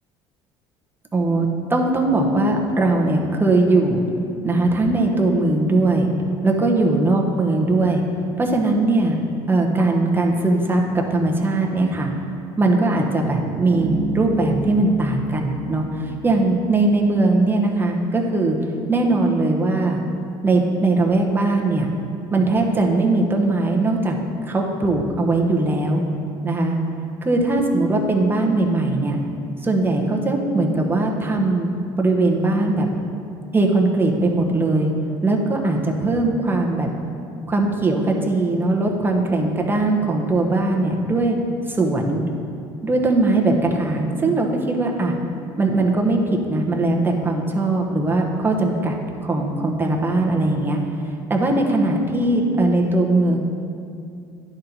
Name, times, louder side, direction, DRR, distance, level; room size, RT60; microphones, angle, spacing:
voice 1, 1.1-4.1 4.4-6.1 6.4-8.0 8.4-9.2 9.5-12.1 12.6-18.6 18.9-20.0 20.4-21.9 22.3-24.2 24.5-26.0 26.4-26.8 27.2-29.2 29.6-31.7 32.0-32.9 33.5-34.9 35.2-36.9 37.5-41.4 41.7-42.2 42.8-45.1 45.6-46.2 46.5-49.0 49.2-50.8 51.3-53.4, right 2 dB, 15° right, 0 dB, 1.0 m, -20 dB
Bass guitar, 13.7-17.2, right 3 dB, 55° right, 0.6 m, -31 dB
10.5 x 4.3 x 4.0 m, 2.5 s
supercardioid pair, 90°, 12 cm